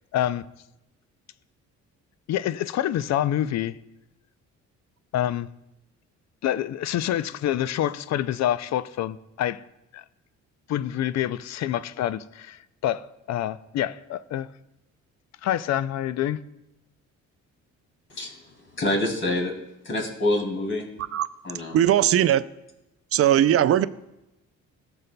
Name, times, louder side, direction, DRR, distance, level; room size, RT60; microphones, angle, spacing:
voice 1, 0.1-0.5 2.3-3.8 5.1-5.5 6.4-9.6 9.9-10.0 10.7-14.5 15.4-16.4, left 12 dB, 60° left, 0.4 m, -27 dB
voice 2, 18.1-19.5 19.8-20.9 21.4-21.8, left 1 dB, 40° left, 2.5 m, -27 dB
voice 3, 21.7-22.4 23.1-23.9, right 11 dB, 50° right, 0.4 m, -19 dB
15.0 x 6.8 x 2.2 m
cardioid pair, 90°, 30 cm